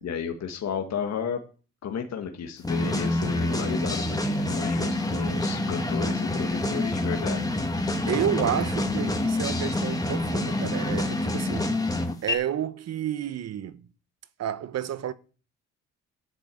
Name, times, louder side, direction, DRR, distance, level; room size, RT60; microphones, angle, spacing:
voice 1, 0.0-1.4 1.8-7.6, left 7 dB, 60° left, 1.7 m, -33 dB
sound 1, 2.6-12.3, left 1 dB, 10° left, 2.1 m, -27 dB
voice 2, 8.1-11.7 12.2-13.9 14.4-15.1, right 10 dB, 60° right, 0.9 m, -30 dB
11.0 x 6.2 x 8.4 m
cardioid pair, 90°, 30 cm